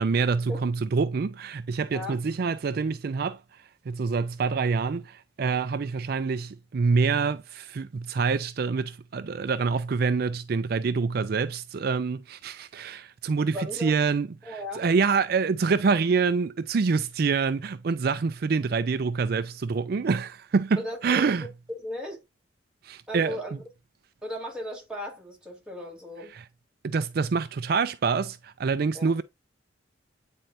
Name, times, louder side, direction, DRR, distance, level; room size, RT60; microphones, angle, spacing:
voice 1, 0.0-21.5 22.8-23.4 26.3-26.4 26.8-29.2, right 5 dB, 55° right, 0.4 m, -26 dB
voice 2, 1.9-2.2 13.5-14.0 14.4-14.9 20.8-21.3 21.7-22.2 23.1-23.6 24.2-26.3 28.9-29.1, left 1 dB, 5° right, 2.8 m, -36 dB
9.2 x 4.4 x 2.5 m
head